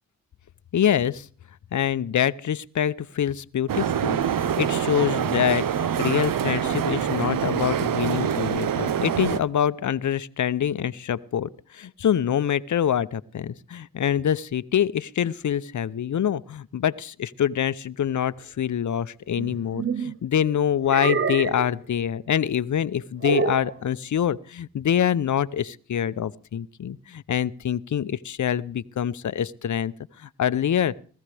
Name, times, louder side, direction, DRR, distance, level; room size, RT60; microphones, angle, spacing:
voice 1, 0.7-1.3 1.7-29.9 30.2-30.9, left 9 dB, 55° left, 16 dB, 0.7 m, -25 dB
sound 1, 3.7-9.4, right 8 dB, 65° right, 0.8 m, -25 dB
sound 2, 19.3-20.2 20.9-21.7 23.2-23.7, right 5 dB, 35° right, 0.7 m, -27 dB
19.5 x 14.5 x 3.4 m, 0.42 s
supercardioid pair, 45°, 36 cm